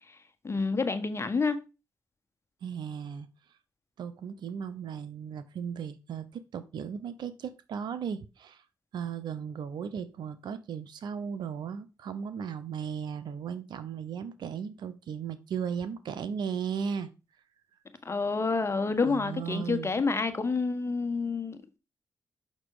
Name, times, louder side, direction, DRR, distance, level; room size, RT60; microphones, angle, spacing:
voice 1, 0.4-1.6 18.0-21.8, left 4 dB, 35° left, 1.4 m, -28 dB
voice 2, 2.6-3.3 4.0-8.6 8.9-17.1 19.0-19.9, right 7 dB, 75° right, 0.8 m, -36 dB
6.7 x 6.1 x 4.9 m
supercardioid pair, 50°, 8 cm